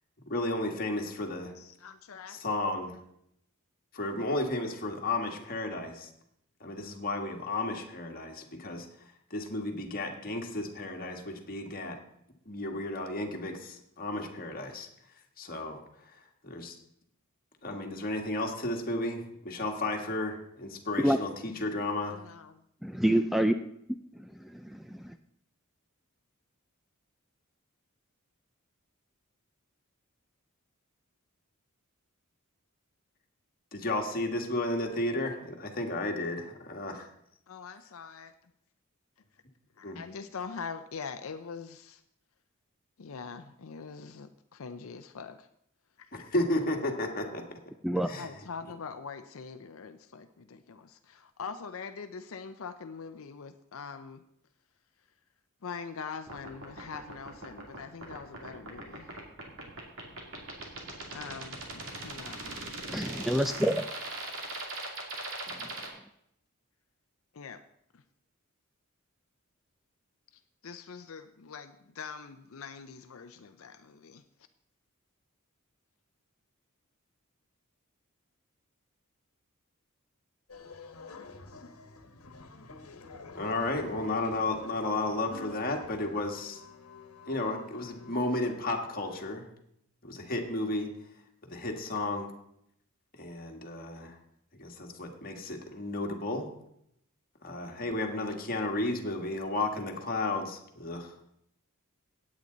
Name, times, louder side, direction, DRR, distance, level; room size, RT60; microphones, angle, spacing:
voice 1, 0.3-1.5 2.3-3.0 3.9-6.1 6.6-8.9 9.3-12.0 12.4-14.9 15.4-15.8 16.1-16.7 17.6-22.2 33.7-37.1 39.8-40.0 46.1-47.6 48.1-48.3 83.3-86.6 87.3-89.5 90.0-90.9 91.5-92.3 93.2-94.2 94.6-96.5 97.4-101.1, left 2 dB, 40° left, 1.7 m, -33 dB
voice 2, 1.6-2.4 22.1-22.5 37.5-38.3 39.8-42.0 43.0-45.5 46.0-46.3 48.2-54.2 55.6-59.1 61.1-63.1 67.3-67.6 67.9-68.0 70.6-74.2, left 5 dB, 70° left, 0.6 m, -43 dB
voice 3, 22.8-23.5 24.2-25.1 47.8-48.1 62.9-63.8, right 1 dB, ahead, 0.3 m, -27 dB
sound 1, 56.3-65.9, right 2 dB, 60° right, 2.6 m, -39 dB
sound 2, 80.5-89.3, left 4 dB, 90° left, 1.3 m, -49 dB
16.5 x 8.7 x 3.9 m
head